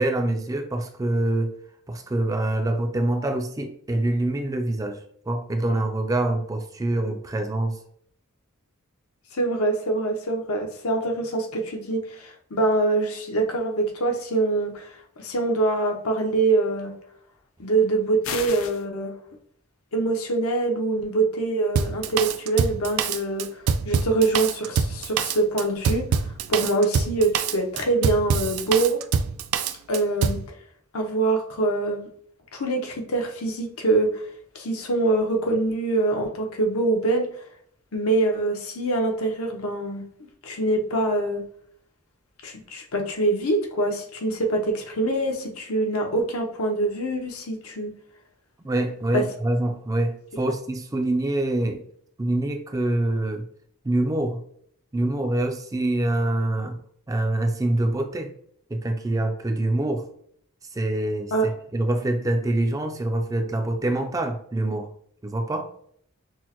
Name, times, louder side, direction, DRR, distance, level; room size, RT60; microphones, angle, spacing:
voice 1, 0.0-1.6 1.9-7.8 48.6-51.8 52.2-53.5 53.8-54.4 54.9-56.8 57.1-58.3 58.7-60.0 60.7-64.9 65.2-65.7, right 1 dB, 15° right, 5 dB, 0.3 m, -25 dB
voice 2, 9.3-16.9 17.6-19.1 19.9-23.5 23.8-29.0 29.9-30.4 30.9-32.1 32.5-34.3 34.5-37.3 37.9-40.0 40.4-41.4 42.4-47.9 49.1-49.2 61.3-61.5, right 2 dB, 85° left, 2 dB, 0.8 m, -24 dB
sound 1, 18.2-18.8, left 6 dB, 65° left, 0.4 m, -32 dB
Drum kit, 21.8-30.4, right 6 dB, 90° right, 0.4 m, -25 dB
6.1 x 2.1 x 2.9 m, 0.63 s
head